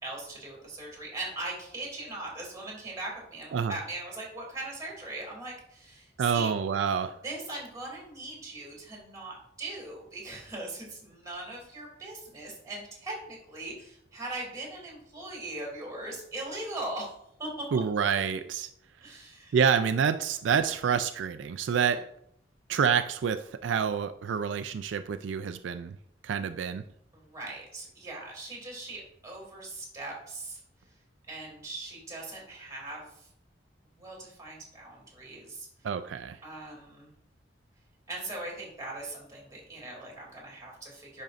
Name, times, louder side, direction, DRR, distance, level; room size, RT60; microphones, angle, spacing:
voice 1, 0.0-6.5 7.2-17.1 17.4-17.8 19.0-19.5 21.9-22.0 27.1-30.6 31.3-33.3 34.0-35.7 36.4-37.1 38.1-41.2, right 2 dB, 20° right, -2 dB, 2.7 m, -40 dB
voice 2, 6.2-7.2 17.7-18.7 19.5-22.1 22.7-26.0 26.2-26.8 35.8-36.4, right 7 dB, 85° right, 10 dB, 0.3 m, -27 dB
10.5 x 5.3 x 2.5 m, 0.72 s
head